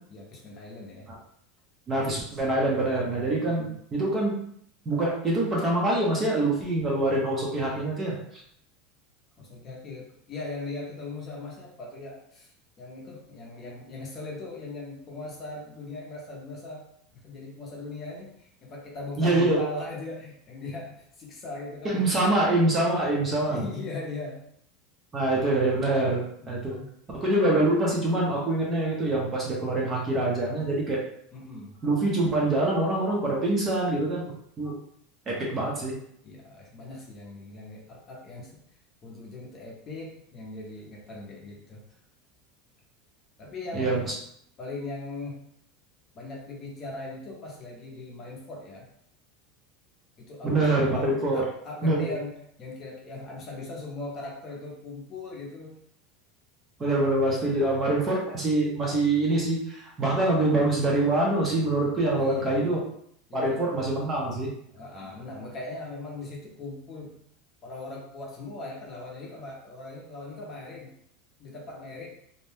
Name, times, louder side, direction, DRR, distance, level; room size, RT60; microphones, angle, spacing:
voice 1, 0.1-1.1 3.5-3.8 9.4-12.5 12.8-16.9 17.1-22.5 23.5-24.4 26.4-26.9 31.3-31.7 36.2-38.6 39.0-41.8 43.4-44.0 44.6-45.4 46.1-48.9 50.2-55.8 57.4-57.9 62.2-62.8 63.3-63.6 64.7-67.2 67.6-70.9 71.4-72.1, left 2 dB, 25° left, -2 dB, 0.6 m, -39 dB
voice 2, 1.9-4.3 4.9-8.2 19.2-19.6 21.8-23.6 25.1-26.8 27.2-31.0 31.8-34.2 34.6-34.8 35.3-36.0 43.7-44.0 50.4-51.5 51.8-52.1 56.8-62.8 63.3-64.5, right 2 dB, 20° right, -3 dB, 0.6 m, -25 dB
2.6 x 2.1 x 3.3 m, 0.68 s
supercardioid pair, 175°, 0 cm